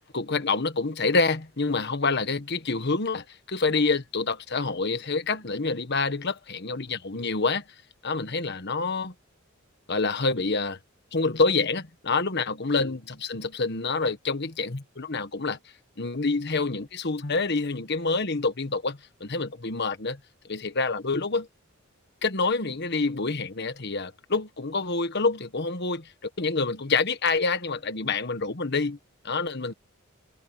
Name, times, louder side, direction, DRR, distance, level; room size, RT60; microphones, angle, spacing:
voice 1, 0.1-7.6 8.0-9.1 9.9-10.8 11.1-15.6 16.0-20.2 20.5-21.5 22.2-26.1 26.4-29.0 29.2-29.7, left 3 dB, 55° left, 1.5 m, -27 dB
head